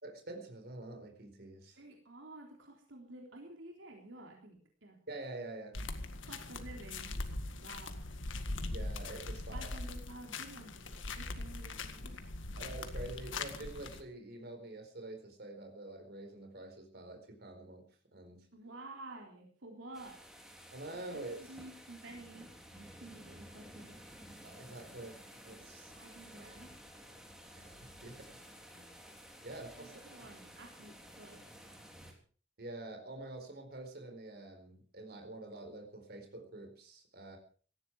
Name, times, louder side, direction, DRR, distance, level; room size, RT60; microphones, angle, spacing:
voice 1, 0.0-1.8 5.1-5.8 8.6-9.8 12.6-18.5 20.7-21.4 24.4-25.9 26.3-26.6 27.5-28.4 28.7-29.0 29.4-30.0 32.6-37.4, right 2 dB, 55° right, 4 dB, 4.5 m, -47 dB
voice 2, 1.8-5.0 6.2-7.2 7.6-8.0 9.5-12.4 18.5-20.2 21.1-24.0 25.9-26.8 29.8-31.4, right 2 dB, 75° right, 1 dB, 3.6 m, -51 dB
sound 1, 5.7-14.0, left 2 dB, 80° left, 1.9 m, -41 dB
sound 2, 19.9-32.1, equal, 5° right, 3.4 m, -54 dB
18.0 x 14.5 x 4.8 m, 0.42 s
head